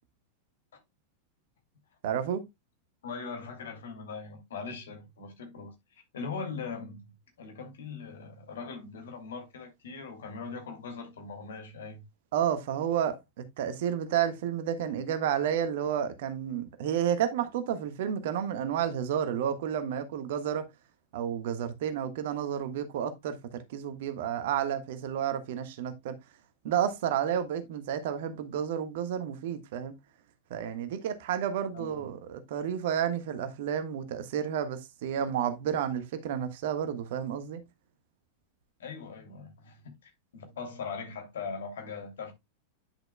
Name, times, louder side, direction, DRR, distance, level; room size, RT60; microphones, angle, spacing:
voice 1, 2.0-2.4 12.3-20.7 21.1-26.2 26.6-29.9 30.5-37.6, right 9 dB, 55° right, 1.4 m, -31 dB
voice 2, 3.0-12.0 31.7-32.1 38.8-42.3, left 5 dB, 60° left, 2.7 m, -41 dB
10.5 x 6.6 x 2.2 m
figure-of-eight pair, 90°, 0 cm